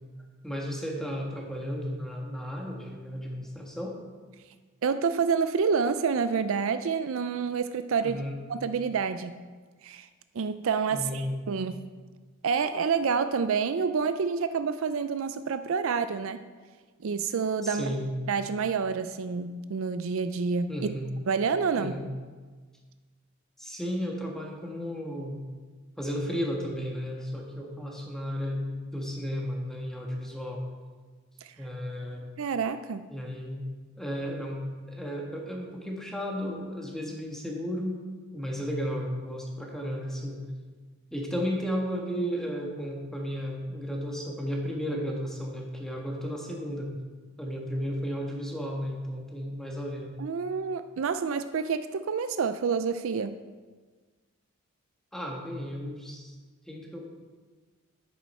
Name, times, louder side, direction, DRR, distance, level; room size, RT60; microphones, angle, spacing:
voice 1, 0.4-4.0 8.0-8.4 10.9-11.4 17.6-18.1 20.7-21.1 21.8-22.1 23.6-25.4 26.0-30.6 31.6-32.3 33.1-33.7 34.0-38.0 38.3-40.4 41.1-46.9 47.4-50.1 55.1-56.3 56.7-57.1, equal, ahead, -1 dB, 1.4 m, -34 dB
voice 2, 4.8-8.2 8.5-9.4 9.8-10.1 10.3-11.9 12.4-16.4 17.0-17.9 18.3-20.7 21.3-22.0 31.4-31.5 32.4-33.1 50.2-53.4, right 5 dB, 65° right, 11 dB, 0.4 m, -28 dB
10.0 x 8.8 x 4.3 m, 1.4 s
head